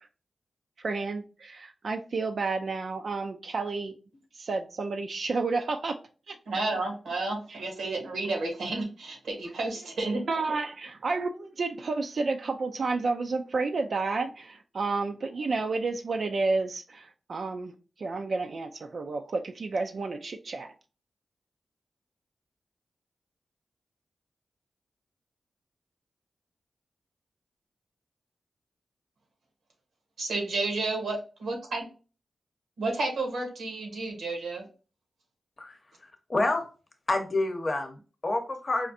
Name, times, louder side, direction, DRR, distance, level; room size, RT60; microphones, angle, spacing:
voice 1, 0.8-3.9 4.3-6.0 6.3-6.4 7.5-7.6 10.3-17.7 18.0-20.7, right 3 dB, 65° right, 0.3 m, -31 dB
voice 2, 6.5-10.2 30.2-31.9 32.8-34.6, right 2 dB, 90° right, 0.9 m, -31 dB
voice 3, 35.6-36.7 37.1-38.9, left 2 dB, 45° left, 0.7 m, -29 dB
4.1 x 2.4 x 2.5 m
cardioid pair, 45°, 0 cm